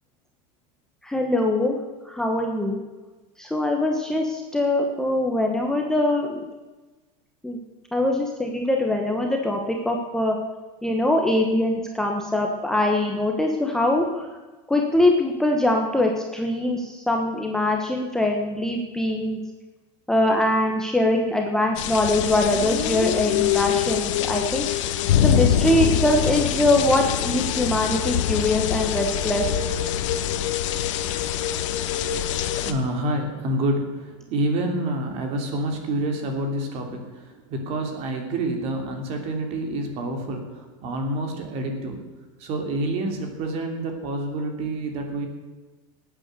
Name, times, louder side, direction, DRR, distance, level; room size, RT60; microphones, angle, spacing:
voice 1, 1.0-1.8 2.1-2.8 3.4-6.4 7.4-7.6 7.9-9.6 9.8-10.4 10.8-14.3 14.7-19.4 20.1-24.7 25.2-29.7, left 1 dB, 5° left, 1 dB, 1.1 m, -22 dB
sound 1, 21.8-32.7, left 10 dB, 70° left, 1.2 m, -24 dB
voice 2, 32.3-42.0 42.4-45.3, right 1 dB, 40° right, 4 dB, 2.9 m, -28 dB
19.0 x 8.8 x 6.7 m, 1.2 s
supercardioid pair, 155°, 17 cm